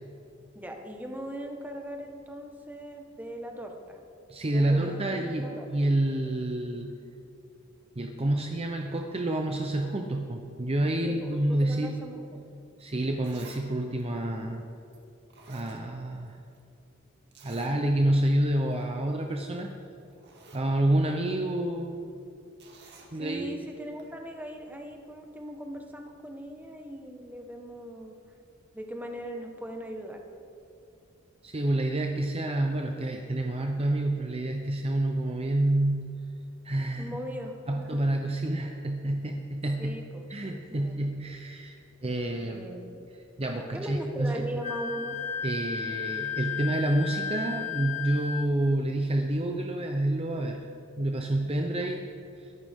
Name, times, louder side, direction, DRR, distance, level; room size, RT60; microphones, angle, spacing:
voice 1, 0.5-4.0 4.5-5.7 11.0-12.4 23.1-28.2 28.7-30.2 36.9-37.9 39.8-40.3 40.7-41.0 42.5-43.0 43.7-45.2, equal, 10° right, 2 dB, 1.3 m, -39 dB
voice 2, 4.3-6.9 8.0-12.0 12.8-14.6 15.5-16.4 17.4-19.7 20.5-22.1 23.1-23.6 31.4-36.2 36.6-37.1 37.7-40.0 40.3-41.8 42.0-42.6 43.4-44.5 45.4-50.6 51.0-52.1 52.4-52.5, right 1 dB, 30° right, 3 dB, 0.8 m, -28 dB
Zipper (clothing), 13.2-13.7 14.0-14.1 14.9-15.0 15.3-16.3 16.5-16.6 17.3-17.8 18.2-18.3 18.6-18.8 19.7-19.8 20.1-20.7 22.6-23.1 24.0-24.1, right 4 dB, 60° right, 2.1 m, -52 dB
Wind instrument woodwind instrument, 44.6-48.5, left 7 dB, 40° left, 0.8 m, -34 dB
22.0 x 11.5 x 3.7 m, 2.6 s
head